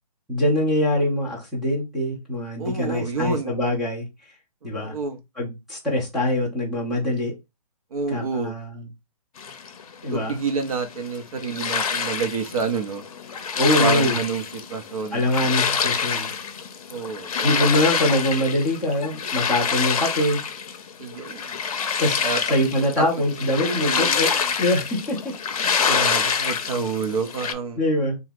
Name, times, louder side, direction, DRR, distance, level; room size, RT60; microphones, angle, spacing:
voice 1, 0.3-4.0 4.6-4.9 5.4-7.3 8.1-8.8 10.0-10.4 13.6-14.2 15.1-16.3 17.4-20.4 22.0-22.2 22.5-24.3 24.6-25.3 27.8-28.2, left 1 dB, ahead, 0.4 m, -23 dB
voice 2, 2.6-3.6 4.8-5.2 7.9-8.5 10.1-13.0 13.8-15.2 16.9-17.5 21.0-21.5 22.2-22.4 23.0-23.1 23.6-24.5 25.8-27.8, right 5 dB, 60° right, 0.8 m, -28 dB
sound 1, 9.4-27.5, left 6 dB, 60° left, 0.6 m, -26 dB
2.8 x 2.3 x 3.3 m
hypercardioid pair, 160°, 21 cm